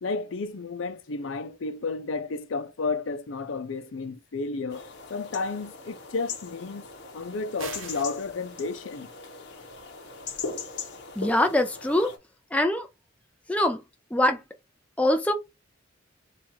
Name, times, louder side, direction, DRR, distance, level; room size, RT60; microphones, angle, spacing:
voice 1, 0.0-6.9 7.1-9.1, left 4 dB, 80° left, 0.5 m, -32 dB
sound 1, 4.7-12.2, left 5 dB, 60° left, 1.0 m, -40 dB
sound 2, 7.6-8.2, right 5 dB, 90° right, 1.0 m, -39 dB
voice 2, 11.2-12.1 12.5-12.9 13.5-13.8 14.1-14.4 15.0-15.3, left 1 dB, 5° left, 0.6 m, -23 dB
4.3 x 2.4 x 4.3 m
head